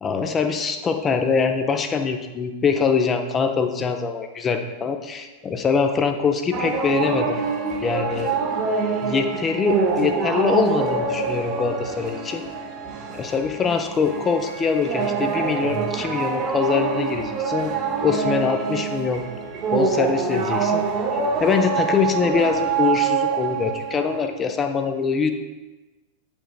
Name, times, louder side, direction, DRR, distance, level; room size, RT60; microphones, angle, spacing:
voice 1, 0.0-7.4 7.8-8.3 9.0-12.4 13.1-17.7 18.0-19.2 19.7-20.8 21.4-25.3, left 5 dB, 20° left, 6 dB, 0.5 m, -23 dB
sound 1, 6.5-24.3, right 5 dB, 35° right, 0.8 m, -25 dB
8.4 x 5.3 x 2.3 m, 1.2 s
figure-of-eight pair, 90°, 0 cm